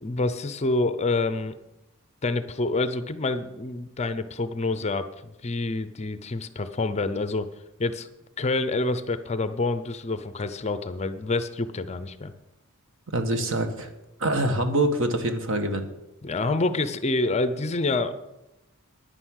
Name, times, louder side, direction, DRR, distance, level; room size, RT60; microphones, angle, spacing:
voice 1, 0.0-1.6 2.2-7.5 7.8-8.1 8.4-12.3 16.2-18.1, left 2 dB, 30° left, 12 dB, 0.6 m, -27 dB
voice 2, 13.1-13.9 14.2-15.8, right 1 dB, 60° right, 7 dB, 1.5 m, -25 dB
9.9 x 9.5 x 6.4 m, 0.92 s
head